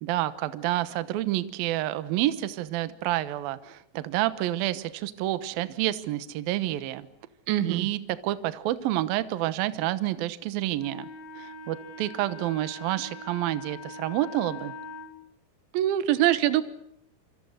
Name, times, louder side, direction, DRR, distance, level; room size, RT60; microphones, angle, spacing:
voice 1, 0.0-7.1 7.6-11.1 11.4-14.7, right 15 dB, 70° right, 13 dB, 2.5 m, -29 dB
voice 2, 7.5-7.9 15.7-16.6, right 13 dB, 90° right, 13 dB, 3.6 m, -23 dB
Wind instrument woodwind instrument, 10.8-15.1, left 2 dB, 25° left, 4.8 m, -42 dB
27.0 x 26.0 x 6.6 m, 0.73 s
omnidirectional pair, 5.2 m